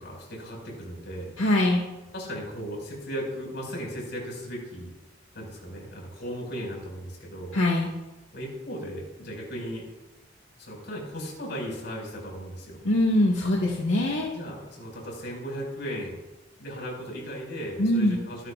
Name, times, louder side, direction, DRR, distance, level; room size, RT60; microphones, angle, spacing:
voice 1, 0.0-1.3 2.1-4.9 5.3-7.6 8.3-9.9 10.6-12.8 14.3-16.2 16.6-18.5, equal, 60° left, -1 dB, 5.6 m, -36 dB
voice 2, 1.4-1.8 7.5-7.9 12.8-14.3 17.8-18.2, left 1 dB, 80° left, -3 dB, 1.8 m, -22 dB
23.5 x 12.0 x 2.5 m, 1.1 s
head